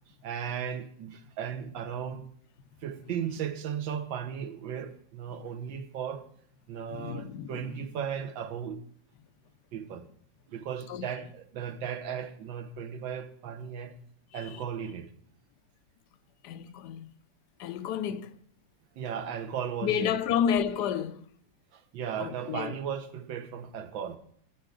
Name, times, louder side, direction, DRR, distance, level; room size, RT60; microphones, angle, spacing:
voice 1, 0.2-2.3 2.8-6.2 6.7-8.8 9.7-10.0 10.5-13.9 14.3-15.1 18.1-18.2 18.9-20.2 21.7-24.2, right 8 dB, 80° right, 1.6 m, -36 dB
voice 2, 6.9-7.9 10.9-11.1 14.5-14.6 16.4-17.1 17.6-18.3 19.8-21.2 22.2-22.8, left 8 dB, 70° left, 1.1 m, -31 dB
11.0 x 9.4 x 3.8 m
omnidirectional pair, 2.1 m